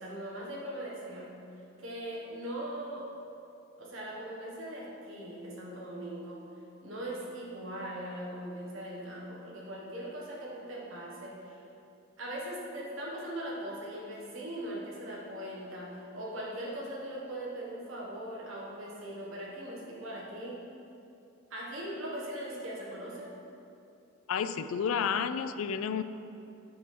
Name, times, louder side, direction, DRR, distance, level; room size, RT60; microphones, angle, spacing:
voice 1, 0.0-1.4 1.8-3.1 3.8-6.5 6.8-11.6 12.2-20.6 21.5-23.4, right 1 dB, 75° right, -4 dB, 1.3 m, -40 dB
voice 2, 24.3-26.0, left 7 dB, 85° left, 12 dB, 0.3 m, -31 dB
8.6 x 3.4 x 6.0 m, 2.7 s
head